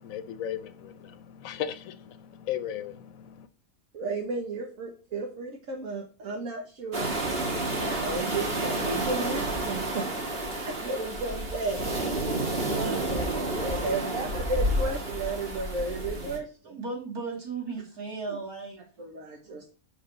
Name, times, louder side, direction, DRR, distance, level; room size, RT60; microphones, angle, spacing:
voice 1, 0.0-3.5, left 9 dB, 70° left, 1.2 m, -36 dB
voice 2, 3.9-7.1 7.7-11.8 12.7-13.3 13.6-16.8 18.3-18.4 19.0-19.7, right 3 dB, 65° right, 1.7 m, -34 dB
sound 1, 6.9-16.4, right 1 dB, 40° right, 1.9 m, -30 dB
voice 3, 12.6-13.0 16.6-18.8, right 4 dB, 85° right, 3.4 m, -35 dB
6.2 x 5.1 x 6.5 m
omnidirectional pair, 1.5 m